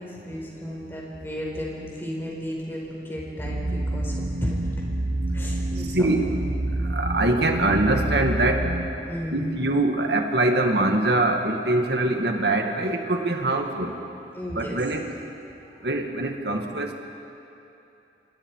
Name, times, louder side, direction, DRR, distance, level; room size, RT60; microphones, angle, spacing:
voice 1, 0.0-4.6 5.3-6.1 9.1-9.7 14.3-14.8, equal, 15° left, -2 dB, 4.7 m, -34 dB
sound 1, 3.4-8.9, right 1 dB, 80° right, 1.7 m, -28 dB
voice 2, 5.9-6.3 6.9-8.7 9.3-13.9 14.6-15.1 15.8-17.1, right 2 dB, 65° right, 3 dB, 2.1 m, -23 dB
26.5 x 26.0 x 4.9 m, 2.9 s
head